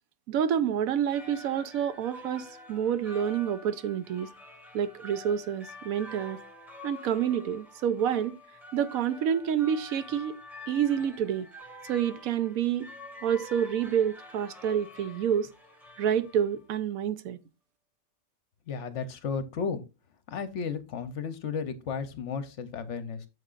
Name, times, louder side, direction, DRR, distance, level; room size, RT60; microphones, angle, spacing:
voice 1, 0.3-4.3 4.7-6.4 6.8-8.3 8.7-10.4 10.7-11.5 11.9-12.9 13.2-15.5 16.0-17.4, right 9 dB, 75° right, 1.0 m, -28 dB
sound 1, 0.9-16.8, left 1 dB, ahead, 1.4 m, -48 dB
voice 2, 18.7-19.8 20.3-23.3, left 6 dB, 60° left, 0.9 m, -34 dB
8.6 x 6.5 x 2.4 m
omnidirectional pair, 1.5 m